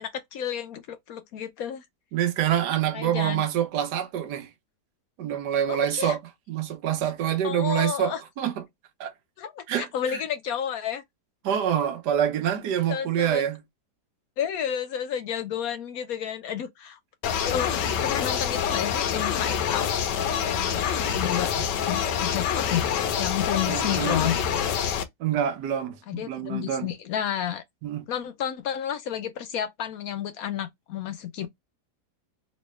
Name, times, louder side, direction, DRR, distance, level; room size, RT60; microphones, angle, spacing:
voice 1, 0.0-1.8 2.9-3.4 5.7-6.2 7.4-8.2 9.4-11.0 12.9-13.4 14.4-17.0 17.2-17.7 18.0-19.9 20.5-21.5 21.9-24.4 26.1-27.6 28.1-31.5, left 9 dB, 70° left, 0.9 m, -31 dB
voice 2, 2.1-4.5 5.2-6.2 6.5-8.5 9.0-9.1 9.7-10.2 11.4-13.6 21.6-21.7 23.6-24.2 25.2-26.9 27.8-28.0, right 10 dB, 75° right, 1.3 m, -26 dB
sound 1, 17.2-25.0, left 8 dB, 85° left, 1.3 m, -26 dB
3.1 x 3.0 x 3.1 m
omnidirectional pair, 1.8 m